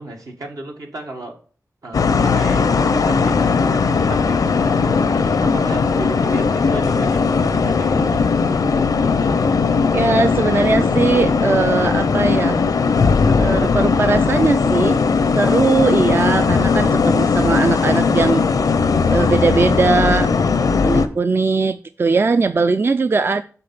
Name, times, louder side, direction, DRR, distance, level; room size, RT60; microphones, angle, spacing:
voice 1, 0.0-1.4 1.8-8.8, right 2 dB, 75° right, 2 dB, 1.6 m, -34 dB
sound 1, 1.9-21.1, left 5 dB, 90° left, 0.6 m, -18 dB
voice 2, 9.9-12.6 13.4-15.0 15.4-18.4 19.1-20.3 20.8-23.4, right 4 dB, 40° right, 11 dB, 0.3 m, -19 dB
6.8 x 4.2 x 5.5 m, 0.42 s
wide cardioid pair, 65°, 6 cm